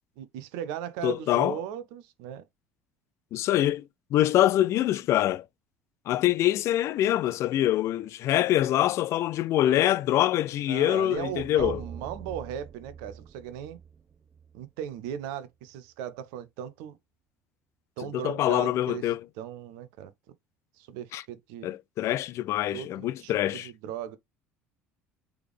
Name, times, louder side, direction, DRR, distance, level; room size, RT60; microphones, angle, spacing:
voice 1, 0.2-2.4 10.7-13.8 14.5-17.0 18.0-20.3 20.8-21.7 22.7-24.2, right 9 dB, 60° right, 0.6 m, -37 dB
voice 2, 1.0-1.6 3.3-5.4 6.1-11.8 18.1-19.2 21.1-21.2 21.6-23.7, left 13 dB, 45° left, 0.4 m, -25 dB
sound 1, 11.1-15.3, right 7 dB, 30° right, 0.9 m, -44 dB
4.6 x 3.5 x 3.3 m
figure-of-eight pair, 60°, 7 cm